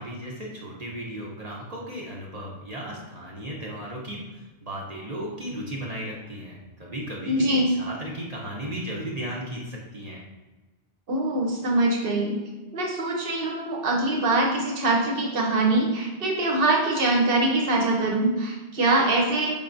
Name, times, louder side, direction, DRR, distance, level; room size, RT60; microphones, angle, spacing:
voice 1, 0.0-10.2, equal, 40° right, -3 dB, 0.8 m, -35 dB
voice 2, 7.3-7.7 11.1-12.4 12.7-19.5, right 2 dB, 60° right, -1 dB, 1.1 m, -23 dB
5.3 x 3.4 x 2.6 m, 1.2 s
omnidirectional pair, 1.1 m